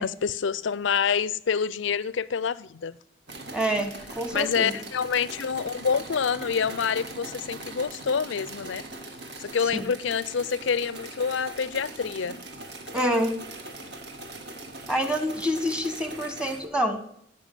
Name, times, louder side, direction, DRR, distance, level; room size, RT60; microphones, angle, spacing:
voice 1, 0.0-3.0 4.3-8.8 9.4-12.4, left 6 dB, 70° left, 0.5 m, -27 dB
sound 1, 3.3-16.7, right 2 dB, 55° right, 1.9 m, -41 dB
voice 2, 3.5-4.7 9.7-9.9 12.9-13.3 14.9-17.0, equal, 5° right, 1.1 m, -27 dB
15.5 x 5.7 x 8.3 m
head